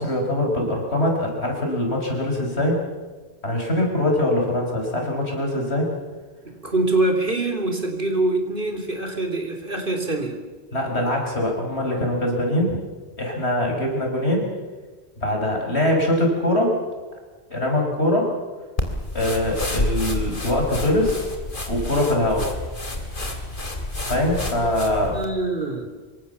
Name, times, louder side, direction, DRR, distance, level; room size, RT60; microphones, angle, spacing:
voice 1, 0.0-2.8 3.4-5.9 10.7-12.8 13.2-14.4 15.2-16.8 17.5-18.3 19.1-21.3 21.7-22.5 24.1-25.2, left 1 dB, 90° left, 1 dB, 6.2 m, -22 dB
voice 2, 6.4-10.4 25.1-25.9, right 2 dB, 55° right, 5 dB, 3.9 m, -24 dB
sound 1, 18.8-25.3, left 1 dB, 50° left, 3.3 m, -29 dB
26.0 x 24.0 x 7.1 m, 1.3 s
omnidirectional pair, 1.1 m